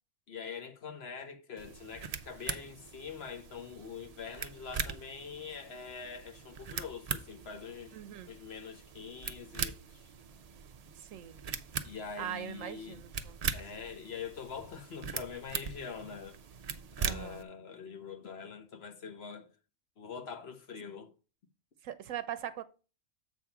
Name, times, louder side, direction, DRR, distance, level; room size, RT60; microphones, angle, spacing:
voice 1, 0.3-8.0 8.3-10.1 11.8-13.0 13.5-16.4 17.0-19.5 20.0-21.1, left 6 dB, 55° left, 1.1 m, -44 dB
sound 1, 1.6-17.4, right 6 dB, 50° right, 0.4 m, -41 dB
voice 2, 7.9-8.3 11.0-11.4 12.2-13.4 17.0-17.5 21.8-22.6, right 10 dB, 75° right, 1.0 m, -41 dB
7.5 x 3.6 x 5.7 m
omnidirectional pair, 1.4 m